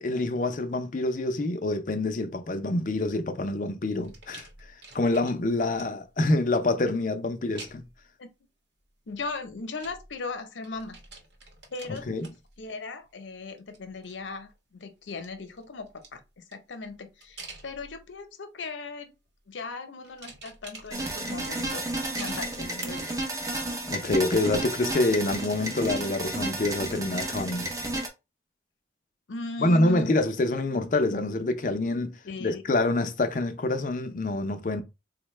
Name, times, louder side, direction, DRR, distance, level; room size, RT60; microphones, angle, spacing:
voice 1, 0.0-4.5 4.9-7.8 11.9-12.3 23.9-27.7 29.6-32.1 32.4-34.8, left 2 dB, 45° left, 0.5 m, -26 dB
sound 1, 4.0-6.1 7.6-8.1 9.1-10.4 10.6-13.1 13.5-14.5 15.0-18.2 18.9-19.3 20.0-21.3 22.2-22.8 23.3-23.4, right 4 dB, 70° right, 0.9 m, -48 dB
voice 2, 9.1-11.0 11.7-12.3 12.6-19.1 19.5-21.9 22.1-23.1 29.3-30.1 32.2-32.6, left 3 dB, 90° left, 0.7 m, -38 dB
sound 2, 20.9-28.1, right 1 dB, 20° right, 0.5 m, -32 dB
4.0 x 2.1 x 3.0 m
head